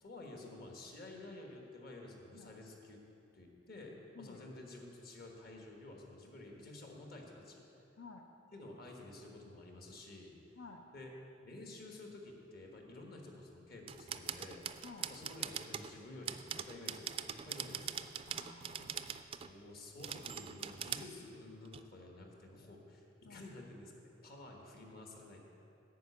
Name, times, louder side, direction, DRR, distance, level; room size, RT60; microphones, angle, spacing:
voice 1, 0.0-3.0 3.3-7.6 8.5-10.3 10.9-11.1 11.4-14.7 15.1-18.0 19.4-25.4, left 2 dB, 55° left, 0 dB, 1.5 m, -51 dB
voice 2, 10.6-10.9 14.8-15.1 18.3-19.1 23.2-23.4, left 4 dB, 90° left, 3 dB, 0.6 m, -53 dB
sound 1, 13.9-15.9 16.3-19.5 20.0-21.1 21.7-21.8, right 8 dB, 30° right, 0.3 m, -42 dB
9.3 x 5.8 x 8.4 m, 2.7 s
head